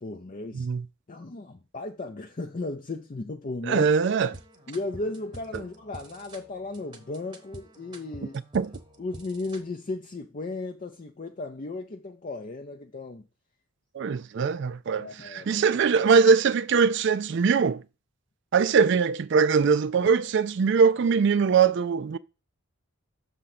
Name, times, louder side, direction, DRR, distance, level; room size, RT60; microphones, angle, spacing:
voice 1, 0.0-0.7 1.1-3.9 4.7-8.4 9.0-13.2 15.0-15.6, left 2 dB, 35° left, 0.5 m, -35 dB
voice 2, 0.5-0.9 3.6-4.4 5.5-5.6 8.5-8.7 13.9-17.8 18.5-22.2, right 5 dB, 50° right, 0.3 m, -22 dB
sound 1, 4.3-9.7, right 1 dB, 20° right, 0.9 m, -47 dB
6.6 x 3.7 x 5.9 m
head